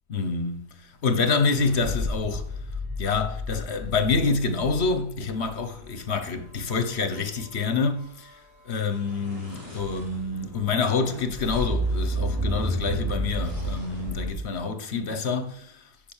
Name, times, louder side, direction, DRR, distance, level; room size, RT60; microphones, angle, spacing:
voice 1, 0.1-2.5 3.0-8.4 8.6-15.9, left 4 dB, 70° left, 1.5 m, -27 dB
sound 1, 1.6-5.7 9.0-14.3, equal, 15° right, 5.3 m, -31 dB
10.5 x 5.5 x 7.3 m
omnidirectional pair, 1.2 m